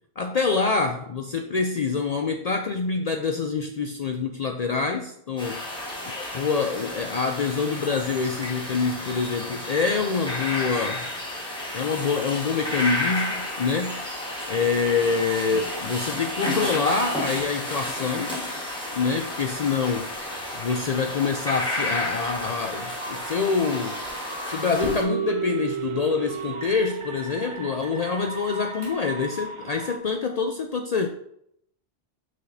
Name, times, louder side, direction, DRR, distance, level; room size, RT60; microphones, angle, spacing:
voice 1, 0.2-5.7 6.1-11.1 11.7-14.0 14.5-18.4 18.9-20.2 20.5-24.1 24.4-31.1, left 5 dB, 75° left, 4 dB, 0.3 m, -26 dB
sound 1, 5.4-25.0, left 1 dB, 5° left, 1.4 m, -32 dB
sound 2, 22.7-30.0, right 2 dB, 45° right, 0.4 m, -39 dB
sound 3, 24.8-28.9, right 4 dB, 25° right, 1.5 m, -32 dB
6.3 x 5.8 x 2.7 m, 0.72 s
omnidirectional pair, 1.2 m